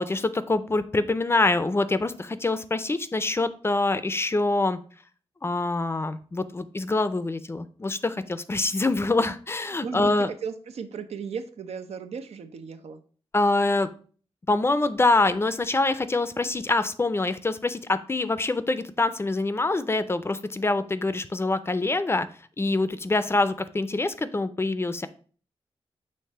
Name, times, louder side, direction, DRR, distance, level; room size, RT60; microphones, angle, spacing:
voice 1, 0.0-4.8 5.4-10.3 13.3-13.9 14.5-22.3 22.6-25.1, left 2 dB, 25° left, 13 dB, 0.4 m, -25 dB
voice 2, 9.8-13.0, right 6 dB, 85° right, 8 dB, 0.7 m, -36 dB
6.6 x 3.2 x 5.5 m, 0.42 s
wide cardioid pair, 125°, 10 cm